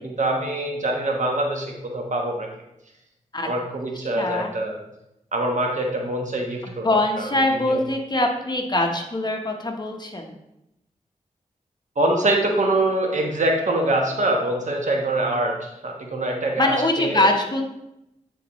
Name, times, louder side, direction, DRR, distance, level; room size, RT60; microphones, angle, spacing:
voice 1, 0.0-2.5 3.4-4.8 5.3-7.3 7.6-7.8 12.0-16.7 17.0-17.3, right 1 dB, 65° right, 1 dB, 1.2 m, -24 dB
voice 2, 4.1-4.5 6.8-10.3 16.6-17.6, left 2 dB, 35° left, 2 dB, 1.1 m, -23 dB
9.8 x 4.1 x 3.1 m, 0.86 s
wide cardioid pair, 65°, 13 cm